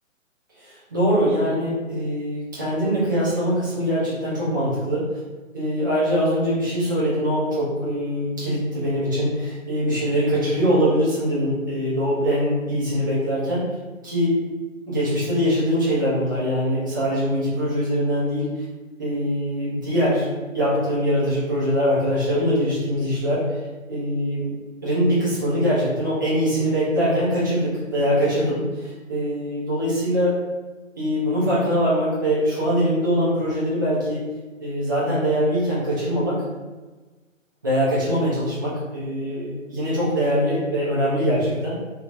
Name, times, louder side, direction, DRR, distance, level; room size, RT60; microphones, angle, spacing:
voice 1, 0.6-5.0 5.5-13.7 14.0-14.3 14.9-18.5 19.0-20.3 20.5-23.4 23.9-24.5 24.8-30.3 31.0-34.2 34.6-36.4 37.6-41.7, equal, 15° right, -10 dB, 0.6 m, -22 dB
3.0 x 2.9 x 2.5 m, 1.3 s
figure-of-eight pair, 140°, 40 cm